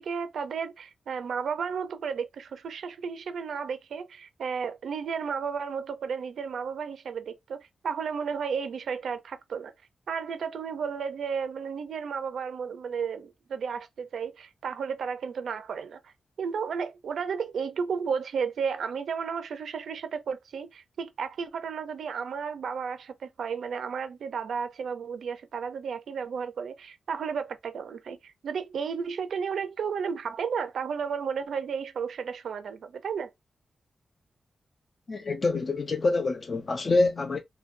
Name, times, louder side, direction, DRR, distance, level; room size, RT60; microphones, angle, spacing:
voice 1, 0.0-9.7 10.1-16.0 16.4-33.3, right 6 dB, 85° right, 0.5 m, -33 dB
voice 2, 35.1-37.4, left 3 dB, 35° left, 0.4 m, -26 dB
3.8 x 2.2 x 2.5 m
wide cardioid pair, 155°, 0 cm